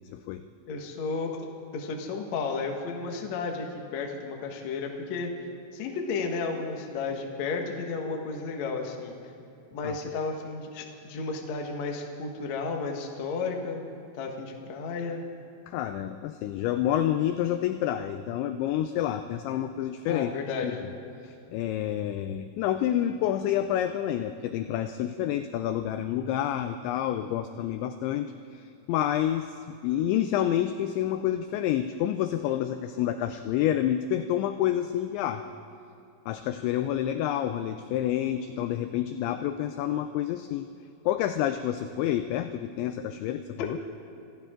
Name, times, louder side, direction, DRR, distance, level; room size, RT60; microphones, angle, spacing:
voice 1, 0.1-0.4 9.8-10.0 15.7-20.3 20.6-20.8 21.2-35.4 36.3-40.7 41.1-43.8, left 11 dB, 85° left, 9 dB, 2.6 m, -28 dB
voice 2, 0.7-1.3 1.7-5.3 5.7-9.1 9.7-13.8 14.1-15.2 20.1-20.8, left 4 dB, 70° left, 2 dB, 1.6 m, -33 dB
26.0 x 14.5 x 3.7 m, 2.9 s
omnidirectional pair, 5.8 m